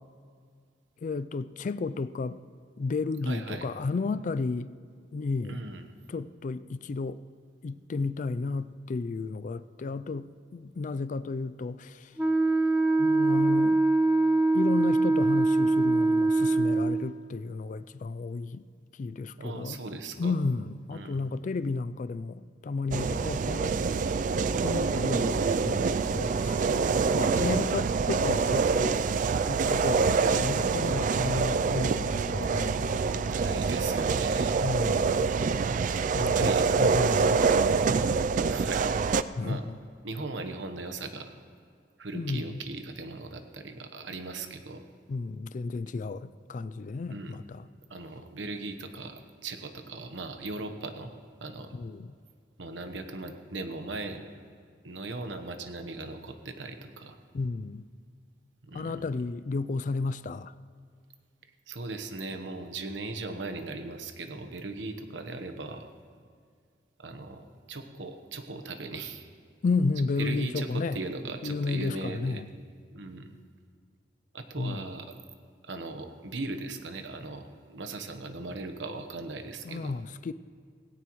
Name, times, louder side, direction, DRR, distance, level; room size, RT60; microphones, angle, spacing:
voice 1, 1.0-2.4 2.8-4.7 5.1-5.6 6.1-7.2 7.6-12.1 13.0-13.8 14.5-18.6 19.0-19.8 20.2-23.8 24.6-26.6 27.1-29.0 29.5-33.7 34.6-35.3 36.1-37.7 39.4-39.8 42.1-42.5 45.1-47.6 51.7-52.1 57.3-57.9 58.7-60.5 69.6-71.0 71.4-72.5 74.6-74.8 79.7-80.3, left 3 dB, 45° left, 0.3 m, -32 dB
voice 2, 3.2-3.7 5.5-5.8 19.4-20.4 20.9-21.2 27.3-27.7 33.2-34.6 36.1-36.7 38.5-39.1 39.4-39.6 40.0-41.3 42.0-44.8 47.1-47.4 47.9-51.1 51.4-51.7 52.6-54.3 54.8-57.2 58.6-59.0 61.7-65.9 67.0-69.3 70.2-72.4 72.9-73.3 74.3-75.1 75.6-80.0, right 3 dB, 85° right, 1.1 m, -38 dB
Wind instrument woodwind instrument, 12.2-17.0, right 2 dB, 5° right, 0.7 m, -23 dB
sound 1, 22.9-39.2, right 5 dB, 45° right, 0.3 m, -26 dB
17.5 x 17.0 x 3.1 m
head